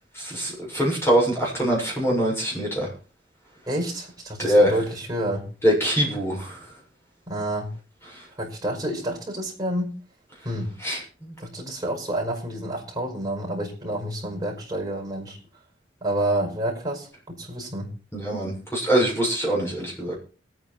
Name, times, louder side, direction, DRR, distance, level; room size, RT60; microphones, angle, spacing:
voice 1, 0.2-2.9 4.4-4.7 5.6-6.5 10.8-11.3 18.1-20.1, right 1 dB, 15° left, -2 dB, 6.9 m, -23 dB
voice 2, 3.7-5.5 7.3-7.7 8.4-9.9 10.4-10.7 11.4-15.4 16.0-17.9, right 1 dB, 20° right, -1 dB, 5.6 m, -29 dB
21.5 x 9.2 x 4.5 m, 0.37 s
head